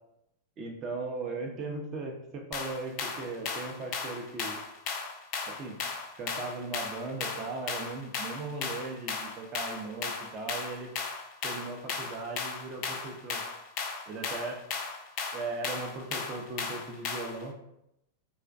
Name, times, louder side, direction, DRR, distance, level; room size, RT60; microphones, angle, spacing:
voice 1, 0.6-4.6 5.4-5.8 6.2-10.9 11.4-13.4 14.1-14.6 15.3-17.5, right 3 dB, 35° right, 2 dB, 0.5 m, -38 dB
sound 1, 2.5-17.4, left 5 dB, 45° left, 0.4 m, -36 dB
2.4 x 2.1 x 2.5 m, 0.82 s
figure-of-eight pair, 95°, 0 cm